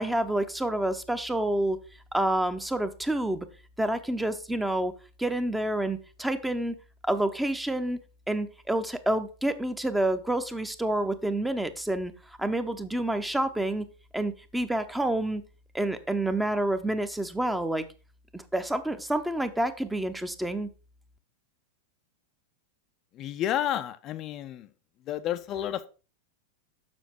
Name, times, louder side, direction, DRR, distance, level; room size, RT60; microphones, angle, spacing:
voice 1, 0.0-1.8 2.1-3.5 3.8-4.9 5.2-6.8 7.0-8.0 8.3-12.1 12.4-13.9 14.1-15.4 15.7-17.9 18.3-20.7, right 1 dB, 5° right, 10 dB, 0.8 m, -28 dB
voice 2, 23.1-24.7 25.1-25.9, left 11 dB, 35° left, 9 dB, 0.5 m, -31 dB
7.1 x 5.8 x 4.5 m, 0.35 s
figure-of-eight pair, 95°, 0 cm